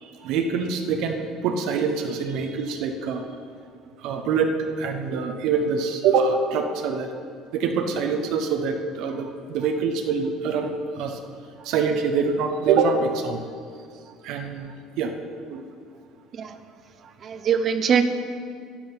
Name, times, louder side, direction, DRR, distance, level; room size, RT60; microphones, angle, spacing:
voice 1, 0.0-3.2 4.0-7.1 7.5-11.2 11.6-13.4 14.2-14.7 15.0-15.1 15.5-15.6, right 5 dB, 70° right, 5 dB, 1.0 m, -25 dB
voice 2, 17.2-18.0, right 7 dB, 40° right, 9 dB, 0.8 m, -22 dB
11.0 x 6.1 x 8.8 m, 2.2 s
cardioid pair, 115°, 0 cm